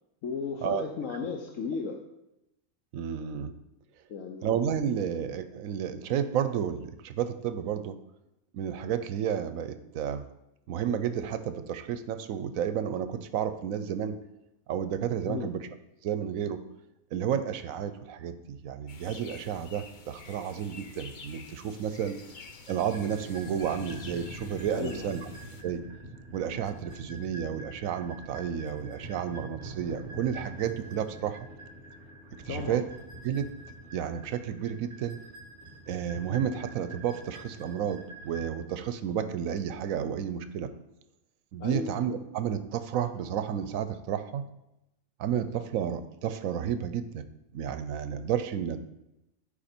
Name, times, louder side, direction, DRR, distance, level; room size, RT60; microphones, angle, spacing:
voice 1, 0.2-2.0 4.1-4.5 15.2-15.5 24.7-25.2 32.5-32.8 41.6-41.9, left 5 dB, 75° left, 3 dB, 1.1 m, -34 dB
voice 2, 2.9-3.5 4.4-8.0 8.5-10.2 10.7-14.2 14.7-15.7 16.0-16.6 17.1-22.2 22.7-25.2 25.6-25.8 26.3-31.5 32.5-32.9 33.2-33.5 33.9-35.2 35.9-40.7 41.5-44.4 45.2-47.2 47.5-48.8, right 8 dB, 80° right, 11 dB, 1.0 m, -31 dB
sound 1, 18.9-25.6, left 4 dB, 45° left, 0.7 m, -48 dB
sound 2, 22.7-38.5, right 2 dB, 30° right, 1.5 m, -45 dB
11.0 x 4.9 x 4.4 m, 0.89 s
omnidirectional pair, 1.4 m